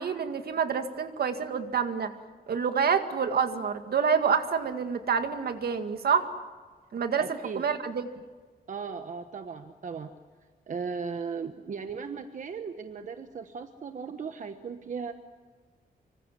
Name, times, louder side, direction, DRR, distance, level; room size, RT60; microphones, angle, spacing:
voice 1, 0.0-2.1 2.5-6.3 6.9-8.1, right 6 dB, 75° right, 7 dB, 2.0 m, -27 dB
voice 2, 7.2-7.6 8.7-10.1 10.7-15.1, right 5 dB, 50° right, 7 dB, 1.2 m, -37 dB
26.0 x 25.0 x 7.6 m, 1.4 s
wide cardioid pair, 180°, 16 cm